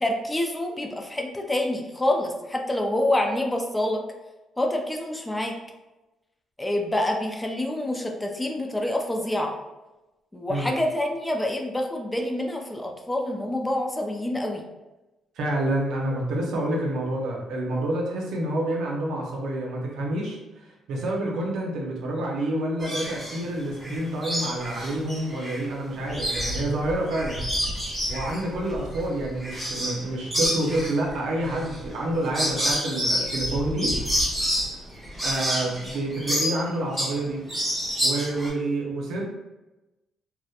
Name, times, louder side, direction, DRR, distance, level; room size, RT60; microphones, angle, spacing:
voice 1, 0.0-4.0 4.6-5.6 6.6-9.5 10.3-14.6, left 1 dB, 15° left, 1 dB, 0.4 m, -27 dB
voice 2, 15.4-20.4 20.9-27.4 28.1-33.9 35.2-37.4 38.0-39.2, right 1 dB, 85° right, -2 dB, 0.6 m, -28 dB
sound 1, 22.8-23.4 23.8-25.6 25.9-30.0 30.3-37.2 37.5-38.5, equal, 15° right, 1.1 m, -28 dB
2.8 x 2.1 x 2.4 m, 1.0 s
cardioid pair, 90°, 0 cm